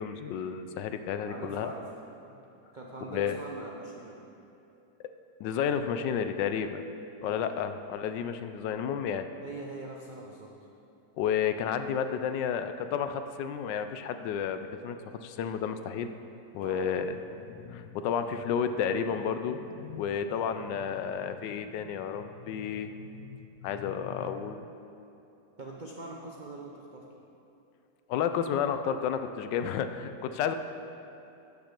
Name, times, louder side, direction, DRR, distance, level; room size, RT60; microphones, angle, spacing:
voice 1, 0.0-1.7 3.1-3.4 5.4-6.8 7.2-9.3 11.2-16.1 16.5-24.7 28.1-30.5, left 7 dB, 80° left, 9 dB, 1.2 m, -31 dB
voice 2, 1.2-1.9 2.3-2.4 2.7-4.2 7.2-7.6 9.4-10.5 16.6-16.9 20.2-20.5 25.6-27.1, right 2 dB, 70° right, -2 dB, 0.4 m, -43 dB
13.0 x 6.0 x 5.2 m, 2.8 s
omnidirectional pair, 2.0 m